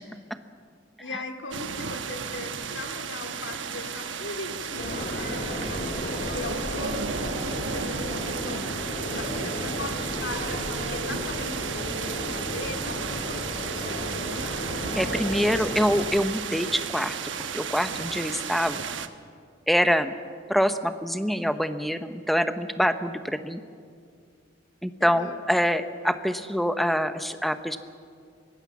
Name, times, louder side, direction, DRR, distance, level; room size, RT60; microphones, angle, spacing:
voice 1, 1.0-14.3 25.0-25.4, left 2 dB, 80° left, 5 dB, 2.4 m, -39 dB
sound 1, 1.5-19.1, right 6 dB, 80° right, 1.1 m, -34 dB
sound 2, 4.8-16.0, left 1 dB, 55° left, 4.2 m, -33 dB
voice 2, 15.0-17.2 17.5-18.8 19.7-20.1 20.5-23.6 24.8-27.8, equal, ahead, 9 dB, 0.8 m, -25 dB
23.5 x 19.0 x 7.3 m, 2.2 s
head